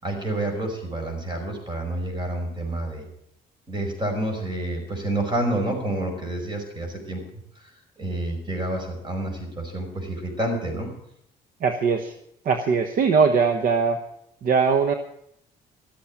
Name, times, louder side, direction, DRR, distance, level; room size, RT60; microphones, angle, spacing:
voice 1, 0.0-3.1 3.7-7.2 7.6-7.7 8.0-10.9, right 1 dB, 25° right, 3 dB, 5.5 m, -28 dB
voice 2, 11.6-12.1 12.4-14.0 14.4-14.9, right 5 dB, 55° right, 7 dB, 1.1 m, -20 dB
13.5 x 8.4 x 8.7 m, 0.74 s
cardioid pair, 110°, 17 cm